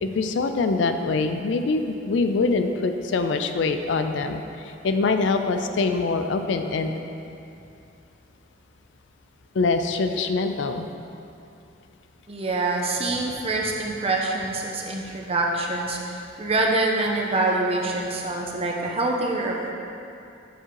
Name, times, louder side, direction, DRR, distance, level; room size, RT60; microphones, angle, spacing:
voice 1, 0.0-6.9 7.3-7.4 9.5-10.9, left 3 dB, 75° left, 7 dB, 0.4 m, -24 dB
voice 2, 12.3-19.7, right 2 dB, 30° right, -1 dB, 0.7 m, -25 dB
8.1 x 3.7 x 4.7 m, 2.7 s
head